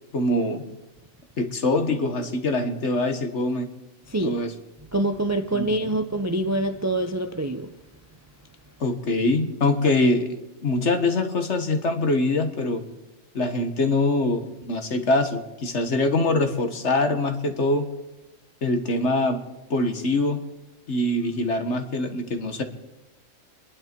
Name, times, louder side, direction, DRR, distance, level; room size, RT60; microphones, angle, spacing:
voice 1, 0.1-0.6 1.4-3.7 4.2-4.5 5.5-5.6 8.8-10.3 10.6-12.8 13.3-17.8 18.6-19.4 19.7-20.4 20.9-22.6, left 2 dB, 55° left, 1.7 m, -23 dB
voice 2, 4.1-4.4 4.9-7.7, right 1 dB, 20° right, 0.5 m, -25 dB
27.0 x 11.5 x 4.5 m
omnidirectional pair, 1.4 m